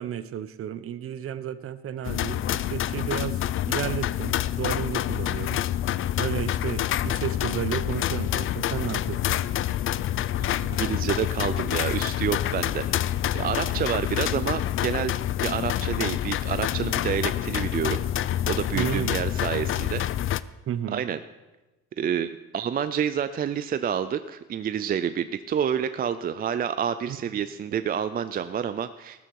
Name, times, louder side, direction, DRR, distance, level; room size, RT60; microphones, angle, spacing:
voice 1, 0.0-3.4 3.7-5.6 6.2-9.4 18.7-19.2 20.7-21.0 27.1-27.2, right 10 dB, 50° right, 15 dB, 0.8 m, -32 dB
sound 1, 2.0-20.4, left 12 dB, 45° left, 0.4 m, -27 dB
voice 2, 10.6-15.1 15.4-18.0 18.5-20.1 20.9-21.2 22.0-29.2, right 8 dB, 30° right, 12 dB, 0.4 m, -28 dB
14.0 x 13.0 x 4.7 m, 1.1 s
cardioid pair, 135°, 30 cm